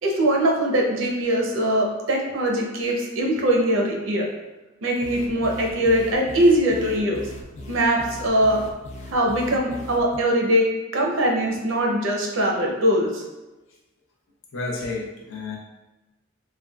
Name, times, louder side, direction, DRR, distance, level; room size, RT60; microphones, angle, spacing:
voice 1, 0.0-4.3 4.8-7.2 7.7-8.6 9.1-13.2, right 1 dB, 75° right, -1 dB, 0.6 m, -21 dB
sound 1, 5.0-10.2, left 1 dB, 35° left, 0.4 m, -39 dB
voice 2, 14.5-15.6, left 3 dB, 85° left, -2 dB, 0.6 m, -30 dB
3.3 x 2.2 x 2.2 m, 1.1 s
head